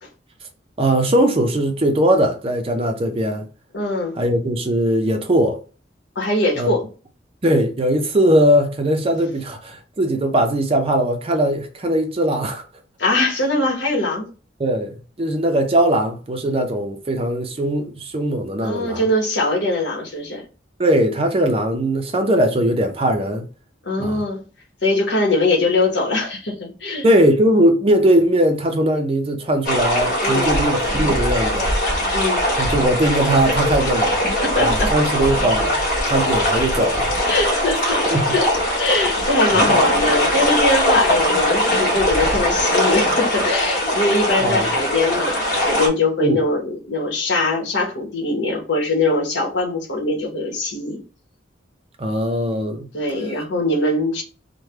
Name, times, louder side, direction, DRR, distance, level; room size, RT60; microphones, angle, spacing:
voice 1, 0.8-3.5 4.2-5.6 6.6-6.7 7.4-12.6 14.6-19.0 20.8-23.5 24.0-24.2 27.0-31.7 32.6-34.2 34.6-37.1 37.8-37.9 38.1-38.3 39.5-39.8 44.4-44.7 46.2-46.4 52.0-52.9, right 1 dB, 30° right, 0.5 m, -20 dB
voice 2, 3.7-4.2 6.1-6.8 13.0-14.3 18.6-20.4 23.8-24.4 24.8-27.1 30.2-30.6 32.1-32.5 34.4-34.9 37.3-38.1 38.3-38.5 38.8-51.0 52.9-54.2, left 2 dB, 70° left, 1.0 m, -22 dB
sound 1, 29.6-45.9, equal, 55° left, 1.4 m, -20 dB
3.2 x 2.1 x 3.2 m
head